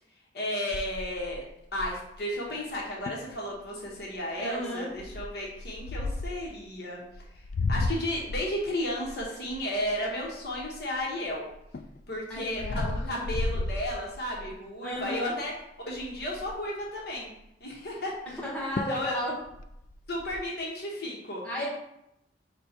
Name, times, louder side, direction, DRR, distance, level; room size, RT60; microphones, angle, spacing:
voice 1, 0.3-1.4 1.7-7.0 7.7-11.4 12.1-12.8 13.1-15.5 15.9-17.3 17.6-18.1 18.9-19.2 20.1-21.4, left 1 dB, 65° left, -3 dB, 1.0 m, -33 dB
sound 1, 0.7-2.2 2.7-2.8 3.1-3.3 3.8-4.1 5.0-6.4 7.1-11.0 11.5-14.5 15.0-15.3 15.5-15.6 15.9-16.7 18.3-18.4 18.8-19.1 19.4-20.4, left 2 dB, 45° left, 0.3 m, -33 dB
voice 2, 4.3-4.9 12.3-13.2 14.8-15.3 18.4-19.3 21.4-21.7, equal, 5° left, -7 dB, 1.2 m, -34 dB
5.1 x 2.2 x 4.3 m, 0.81 s
head